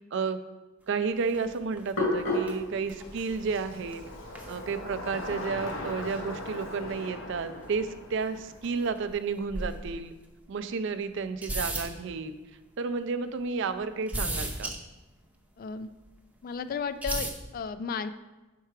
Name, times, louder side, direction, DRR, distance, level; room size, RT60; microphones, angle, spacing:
voice 1, 0.1-0.4 0.9-4.0 4.5-10.1 10.5-12.4 12.8-14.7, right 5 dB, 65° right, 11 dB, 0.4 m, -32 dB
Hands, 1.2-7.1, left 1 dB, 65° left, 1.8 m, -35 dB
sound 1, 1.2-1.5 1.8-1.9 2.2-2.3 2.5-2.6 2.8-3.5 3.9-4.6 4.9-5.0 5.7-5.8 6.7-6.8 7.6-8.3 8.6-9.1 9.4-10.0 10.5-10.6 11.2-11.9 14.1-14.8 16.0-16.1 17.0-17.3, right 2 dB, 10° right, 0.6 m, -34 dB
Bicycle, 1.3-9.6, left 1 dB, 85° left, 0.9 m, -41 dB
voice 2, 15.6-15.9 16.4-18.1, left 5 dB, 45° left, 12 dB, 0.3 m, -34 dB
5.7 x 4.5 x 4.6 m, 1.1 s
head